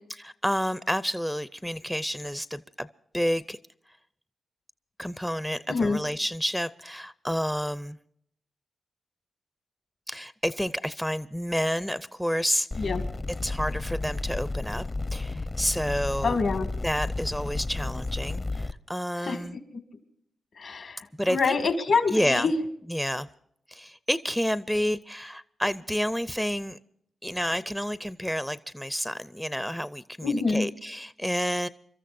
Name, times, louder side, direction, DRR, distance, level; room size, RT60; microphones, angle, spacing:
voice 1, 0.1-2.9 3.1-3.6 5.0-8.0 10.1-12.9 13.3-14.9 15.1-16.4 16.8-19.6 21.2-21.6 22.1-22.5 22.9-23.3 23.7-26.8 27.2-31.7, equal, ahead, 14 dB, 0.5 m, -29 dB
voice 2, 5.7-6.0 12.8-13.0 16.2-16.7 19.2-19.4 20.6-21.0 21.3-22.5 30.2-30.7, left 4 dB, 70° left, 7 dB, 2.2 m, -25 dB
sound 1, 12.7-18.7, left 2 dB, 35° left, 0.8 m, -32 dB
29.5 x 13.5 x 2.6 m, 0.69 s
supercardioid pair, 50°, 0 cm